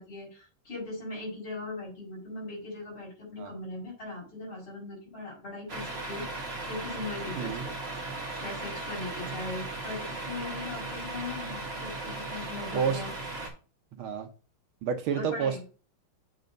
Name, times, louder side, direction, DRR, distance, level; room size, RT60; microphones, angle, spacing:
voice 1, 0.0-7.7 8.4-13.1 15.2-15.6, left 2 dB, 70° left, -4 dB, 5.5 m, -39 dB
Truck, 5.7-13.5, right 2 dB, 30° right, 1.8 m, -37 dB
voice 2, 7.4-7.7 9.3-9.4 12.7-13.0 14.0-14.3 14.8-15.6, right 7 dB, 75° right, 5 dB, 1.7 m, -30 dB
7.9 x 3.4 x 5.1 m, 0.35 s
omnidirectional pair, 2.3 m